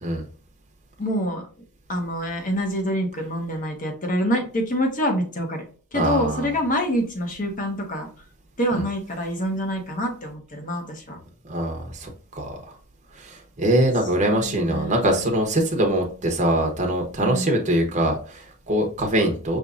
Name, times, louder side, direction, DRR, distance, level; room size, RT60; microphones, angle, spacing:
voice 1, 1.0-1.5 1.9-5.6 5.9-8.1 8.6-11.2 14.3-15.3 17.2-17.9, equal, 35° left, 3 dB, 1.0 m, -26 dB
voice 2, 5.9-6.5 8.7-8.8 11.4-12.6 13.1-19.6, right 1 dB, 35° right, 1 dB, 0.8 m, -23 dB
5.4 x 3.0 x 2.4 m, 0.42 s
head